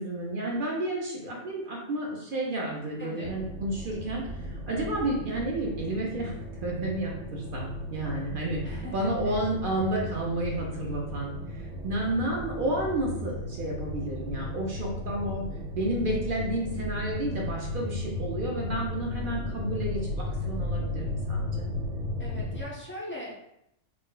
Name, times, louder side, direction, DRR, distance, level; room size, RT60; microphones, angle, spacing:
voice 1, 0.0-6.3 6.6-15.5 15.7-21.7, right 1 dB, 55° right, -2 dB, 0.7 m, -31 dB
voice 2, 3.0-3.3 8.6-9.4 22.2-23.3, left 1 dB, 20° left, -5 dB, 0.3 m, -40 dB
sound 1, 3.2-22.6, left 1 dB, 75° right, 0.9 m, -35 dB
2.5 x 2.2 x 3.7 m, 0.78 s
omnidirectional pair, 1.3 m